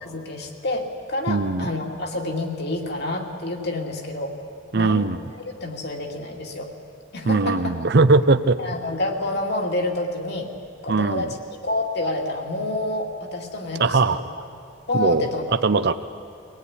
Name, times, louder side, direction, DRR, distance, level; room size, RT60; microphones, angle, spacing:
voice 1, 0.0-4.4 4.7-5.1 5.5-6.7 7.1-7.7 8.6-10.5 10.8-14.2 14.9-15.5, left 2 dB, 55° left, 2 dB, 2.4 m, -28 dB
voice 2, 1.3-1.7 4.7-5.2 7.3-8.6 10.9-11.3 13.8-14.2 14.9-15.3 15.6-15.9, right 3 dB, 50° right, 10 dB, 0.6 m, -19 dB
24.5 x 18.0 x 9.9 m, 2.4 s
head